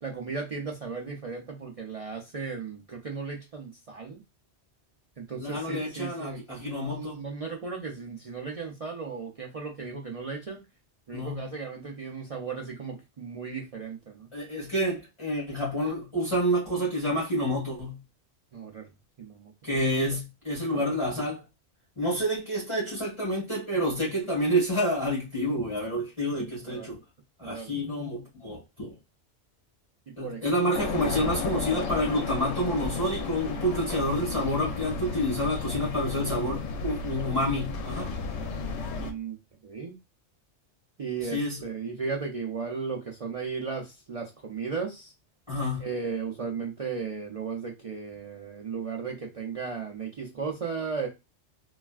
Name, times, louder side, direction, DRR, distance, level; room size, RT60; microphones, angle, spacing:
voice 1, 0.0-4.2 5.2-10.6 11.1-14.3 18.5-18.9 19.2-19.8 20.7-20.8 26.6-26.9 27.4-27.8 30.1-30.7 38.9-39.4 39.6-39.9 41.0-45.1 45.8-51.1, right 5 dB, 50° right, 0.4 m, -36 dB
voice 2, 5.4-7.2 11.1-11.5 14.3-18.0 19.6-21.4 22.0-27.0 27.4-28.9 30.2-38.1 41.2-41.6 45.5-45.9, equal, 25° left, 1.6 m, -28 dB
sound 1, 30.7-39.1, left 4 dB, 80° left, 0.9 m, -33 dB
3.3 x 2.4 x 2.3 m
omnidirectional pair, 1.2 m